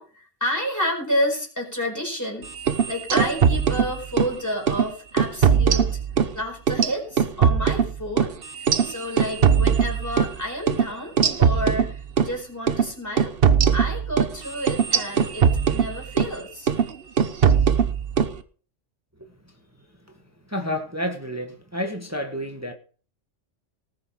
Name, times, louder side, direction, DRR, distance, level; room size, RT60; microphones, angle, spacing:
voice 1, 0.0-6.0 6.3-8.3 8.6-13.3 13.7-16.7, equal, 15° left, 4.7 m, -30 dB
sound 1, 2.6-4.3 4.7-4.9 5.2-6.3 6.7-10.4 10.7-10.8 11.2-12.3 12.7-12.9 13.2-16.3 16.7-16.9 17.2-18.3, right 7 dB, 50° right, 1.1 m, -20 dB
voice 2, 20.5-22.7, equal, 10° right, 1.6 m, -29 dB
19.0 x 6.6 x 4.8 m
omnidirectional pair, 1.3 m